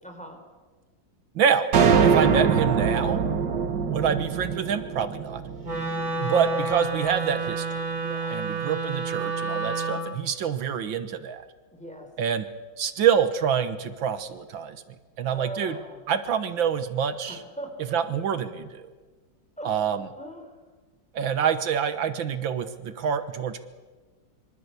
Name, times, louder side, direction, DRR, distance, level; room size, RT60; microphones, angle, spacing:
voice 1, 0.0-0.4 6.0-6.2 8.0-8.4 11.7-12.1 15.3-16.0 17.3-17.9 19.6-20.5, equal, 5° left, 4 dB, 4.5 m, -40 dB
voice 2, 1.4-1.7 2.0-3.2 3.9-5.4 6.2-7.7 8.3-11.5 12.2-12.5 12.8-14.8 15.2-15.8 16.1-17.4 17.9-18.9 19.6-20.1 21.1-23.6, right 7 dB, 80° right, 11 dB, 2.0 m, -26 dB
sound 1, 1.7-6.1, right 6 dB, 65° right, 1.9 m, -23 dB
Wind instrument woodwind instrument, 5.6-10.0, right 3 dB, 50° right, 6.3 m, -29 dB
25.0 x 25.0 x 8.2 m, 1.3 s
omnidirectional pair, 2.1 m